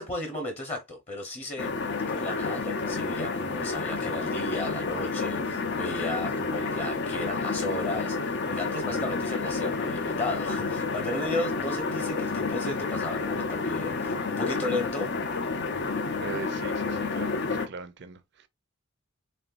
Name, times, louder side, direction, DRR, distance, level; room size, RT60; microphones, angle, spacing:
voice 1, 0.0-1.7 2.1-15.1, left 2 dB, 30° left, 1.0 m, -34 dB
sound 1, 1.6-17.7, left 4 dB, 55° left, 0.7 m, -30 dB
voice 2, 16.2-18.2, right 4 dB, 55° right, 0.6 m, -40 dB
4.2 x 3.6 x 2.5 m
head